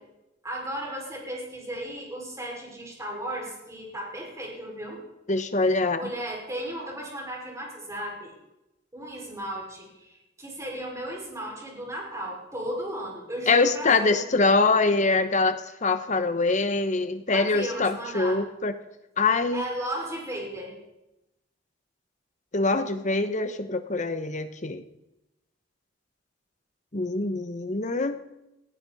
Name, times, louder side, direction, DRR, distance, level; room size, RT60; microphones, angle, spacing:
voice 1, 0.4-5.0 6.0-8.3 8.9-14.2 17.3-18.4 19.5-20.8, right 1 dB, 15° right, -2 dB, 5.6 m, -35 dB
voice 2, 5.3-6.1 13.5-18.7 19.2-19.6 22.5-24.8 26.9-28.2, left 3 dB, 40° left, 9 dB, 1.1 m, -24 dB
20.0 x 15.5 x 4.2 m, 0.92 s
head